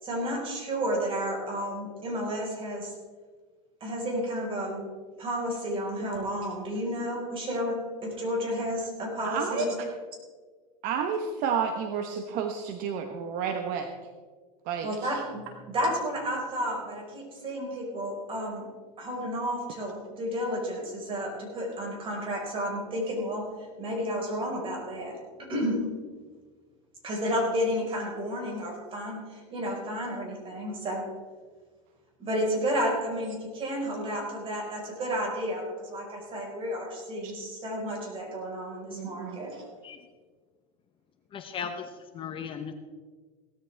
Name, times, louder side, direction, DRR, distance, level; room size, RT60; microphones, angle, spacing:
voice 1, 0.0-2.9 3.8-4.8 5.2-9.6 14.8-18.7 19.0-23.4 23.8-25.8 27.0-31.0 32.2-39.7, equal, 30° right, -1 dB, 4.9 m, -31 dB
voice 2, 9.2-9.9 10.8-13.9 14.6-15.2 37.2-37.3 38.9-39.4, right 6 dB, 50° right, 5 dB, 1.1 m, -31 dB
voice 3, 41.3-42.7, left 7 dB, 30° left, 6 dB, 1.0 m, -37 dB
17.0 x 13.5 x 3.5 m, 1.5 s
supercardioid pair, 135°, 19 cm